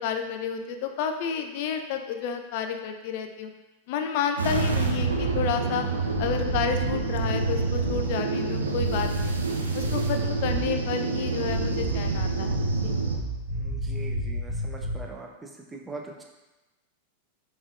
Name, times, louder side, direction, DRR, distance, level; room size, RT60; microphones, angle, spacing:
voice 1, 0.0-3.5 3.9-5.9 6.2-9.4 9.7-12.6 12.8-13.0, left 7 dB, 50° left, 6 dB, 0.4 m, -30 dB
sound 1, 4.4-13.2, right 5 dB, 75° right, 0.5 m, -28 dB
sound 2, 4.5-5.4 6.1-8.0 8.8-9.5 9.8-10.8 11.4-15.1, equal, 50° right, 1.2 m, -31 dB
voice 2, 13.5-16.2, right 3 dB, 15° right, 0 dB, 0.6 m, -42 dB
5.0 x 3.6 x 2.5 m, 1.1 s
figure-of-eight pair, 90°, 0 cm